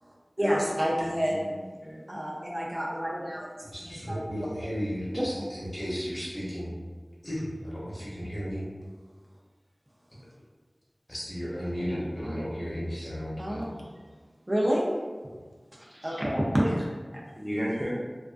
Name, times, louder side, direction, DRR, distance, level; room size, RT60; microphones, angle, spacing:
voice 1, 0.0-1.5 2.1-3.5 3.8-4.2 4.6-4.7 5.2-5.3 13.4-13.8 14.5-15.0 15.8-16.9, equal, 35° right, -5 dB, 0.4 m, -28 dB
voice 2, 1.2-2.3 11.7-12.4 17.4-17.9, equal, ahead, -6 dB, 0.7 m, -36 dB
voice 3, 3.7-6.7 7.2-8.7 11.1-13.6, equal, 40° left, -7 dB, 0.9 m, -34 dB
2.4 x 2.3 x 2.4 m, 1.4 s
wide cardioid pair, 50°, 0 cm